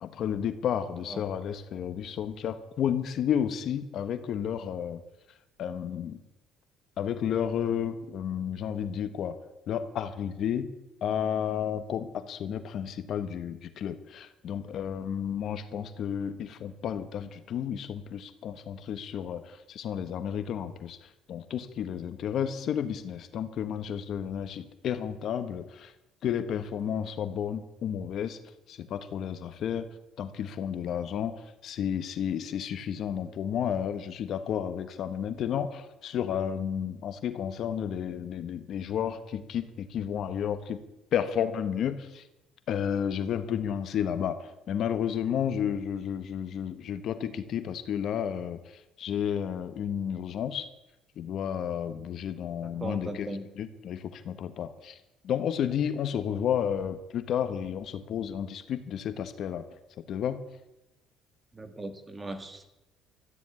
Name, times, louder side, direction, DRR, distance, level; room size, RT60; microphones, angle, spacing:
voice 1, 0.0-5.0 5.6-6.2 7.0-9.4 9.7-10.7 11.0-25.9 26.2-28.4 28.7-29.9 30.2-31.4 31.6-40.8 41.1-42.2 42.7-48.6 49.0-50.7 51.2-55.0 55.2-59.6 60.1-60.4, left 8 dB, 55° left, 10 dB, 1.2 m, -32 dB
voice 2, 52.6-53.4 61.5-62.7, right 2 dB, 15° right, 8 dB, 1.8 m, -39 dB
13.5 x 9.9 x 9.8 m, 0.94 s
cardioid pair, 140°, 0 cm